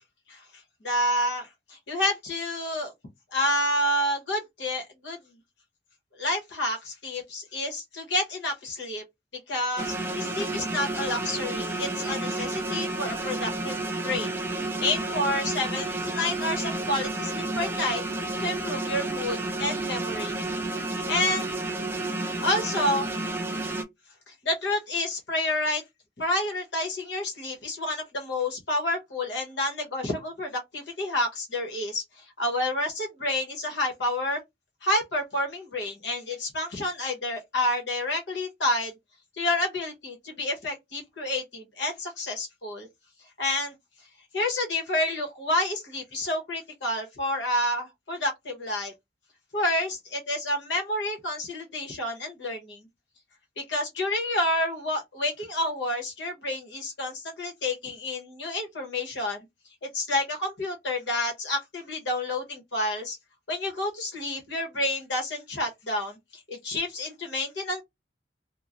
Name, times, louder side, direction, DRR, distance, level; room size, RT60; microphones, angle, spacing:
voice 1, 0.8-2.9 3.3-5.2 6.2-9.0 9.5-14.3 14.8-18.0 18.4-20.4 21.1-21.5 22.3-23.1 24.3-25.8 26.2-34.4 34.8-38.9 39.4-42.9 43.4-43.7 44.3-48.9 49.5-52.8 53.6-59.5 59.9-63.2 63.5-67.8, left 1 dB, 85° left, 1.1 m, -29 dB
sound 1, 9.8-23.8, right 2 dB, 10° right, 0.4 m, -31 dB
3.0 x 2.2 x 2.5 m
head